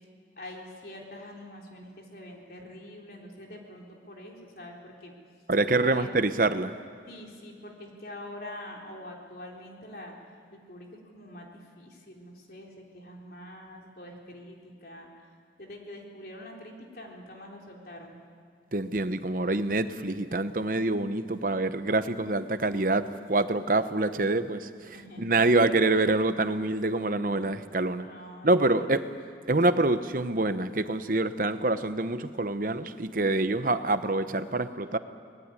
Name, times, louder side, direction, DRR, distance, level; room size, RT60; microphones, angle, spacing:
voice 1, 0.4-5.1 5.8-6.1 7.1-10.2 10.5-11.5 11.7-15.3 15.6-18.2 24.8-25.4 27.3-27.7 28.0-29.0, left 1 dB, 55° left, 0 dB, 3.9 m, -45 dB
voice 2, 5.5-6.7 18.7-24.7 25.2-28.1 28.4-29.0 29.5-35.0, right 2 dB, 50° right, 11 dB, 1.0 m, -26 dB
24.5 x 19.5 x 9.9 m, 2.1 s
head